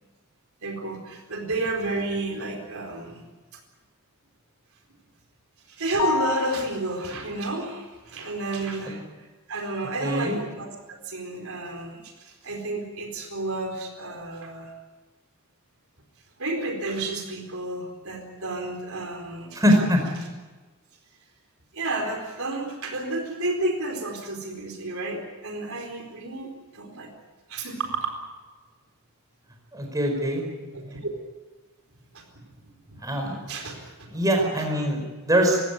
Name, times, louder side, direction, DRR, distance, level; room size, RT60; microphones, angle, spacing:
voice 1, 0.6-3.2 5.7-9.0 9.5-14.7 16.4-19.6 21.7-27.1 27.5-27.9 30.7-31.1 32.1-32.2 32.9-33.1 33.5-34.1, right 2 dB, 70° right, 3 dB, 4.4 m, -31 dB
sound 1, 6.0-7.0, left 7 dB, 80° left, 2.5 m, -28 dB
voice 2, 10.0-10.3 19.5-20.0 29.7-30.4 33.0-33.4 34.1-35.6, equal, 15° right, 2 dB, 5.0 m, -23 dB
22.5 x 16.5 x 9.5 m, 1.3 s
head